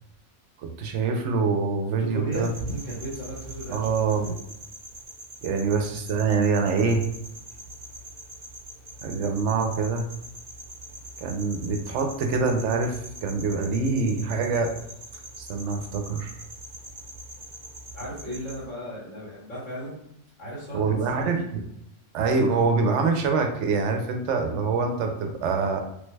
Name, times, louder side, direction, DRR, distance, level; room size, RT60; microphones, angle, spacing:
voice 1, 0.6-2.5 3.7-4.3 5.4-7.0 9.0-10.0 11.2-14.8 15.4-16.3 20.7-21.6 22.1-25.8, right 4 dB, 75° right, 4 dB, 0.9 m, -25 dB
voice 2, 2.0-4.4 17.9-19.9 20.4-21.4, right 1 dB, 75° left, -10 dB, 1.7 m, -35 dB
sound 1, 2.3-18.6, right 1 dB, 45° right, 0.9 m, -43 dB
3.3 x 2.1 x 3.2 m, 0.77 s
omnidirectional pair, 1.3 m